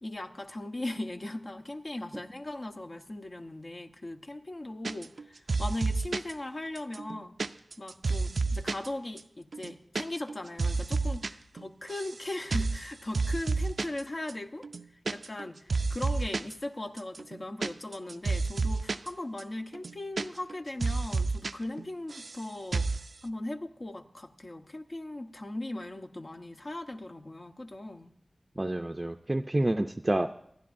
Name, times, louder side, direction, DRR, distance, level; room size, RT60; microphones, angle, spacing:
voice 1, 0.0-7.3 7.8-14.7 15.1-23.0 23.2-28.1, left 1 dB, 50° left, 1.1 m, -38 dB
sound 1, 4.8-5.2 5.5-6.3 6.8-8.9 9.2-9.3 9.5-10.0 10.3-11.3 11.6-12.2 12.5-12.8 13.1-14.0 14.3-14.4 14.6-15.4 15.7-16.5 17.0-19.1 19.4-19.5 19.7-20.5 20.8-21.5 21.8-22.4 22.7-23.0, right 3 dB, 85° right, 0.4 m, -30 dB
voice 2, 28.6-30.3, right 1 dB, 30° right, 0.5 m, -28 dB
27.5 x 10.5 x 2.6 m
wide cardioid pair, 65°, 0 cm